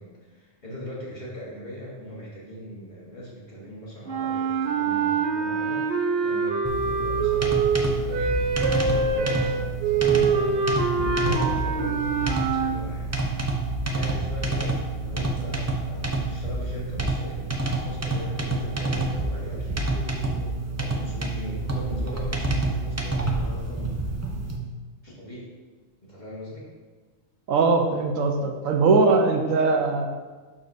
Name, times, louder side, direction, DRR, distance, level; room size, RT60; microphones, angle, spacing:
voice 1, 0.0-13.1 13.9-20.0 20.8-24.2 25.0-25.5 26.0-26.7, equal, 35° left, -6 dB, 1.5 m, -39 dB
sound 1, 4.1-12.8, right 5 dB, 55° right, 0.9 m, -25 dB
sound 2, 6.6-24.6, right 2 dB, 20° right, 0.4 m, -28 dB
voice 2, 27.5-30.1, right 4 dB, 80° right, 4 dB, 1.1 m, -21 dB
11.5 x 4.3 x 2.7 m, 1.3 s
omnidirectional pair, 1.4 m